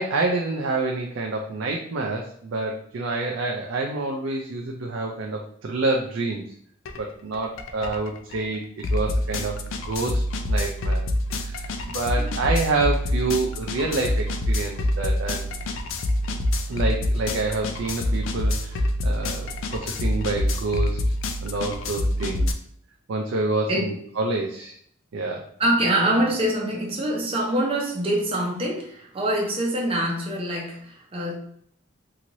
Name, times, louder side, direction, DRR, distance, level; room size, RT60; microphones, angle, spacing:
voice 1, 0.0-6.4 7.0-10.2 10.5-11.0 11.3-15.5 16.7-21.0 21.4-22.5 23.1-24.8 25.1-25.4, right 3 dB, 70° right, 1 dB, 0.4 m, -27 dB
sound 1, 6.9-7.0 7.3-22.5, left 1 dB, 70° left, 0.4 m, -26 dB
voice 2, 25.6-31.3, right 1 dB, 30° right, -2 dB, 0.6 m, -24 dB
3.0 x 2.8 x 2.6 m, 0.64 s
head